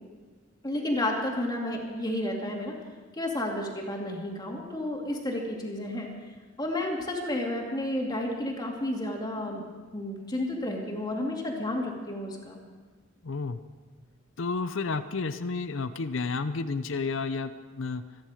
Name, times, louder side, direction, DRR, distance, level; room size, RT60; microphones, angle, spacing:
voice 1, 0.6-2.8 3.1-6.1 6.6-12.6, left 1 dB, 20° left, -1 dB, 2.4 m, -31 dB
voice 2, 13.2-13.6 14.4-18.0, left 4 dB, 65° left, 11 dB, 0.6 m, -31 dB
27.0 x 10.5 x 5.0 m, 1.4 s
head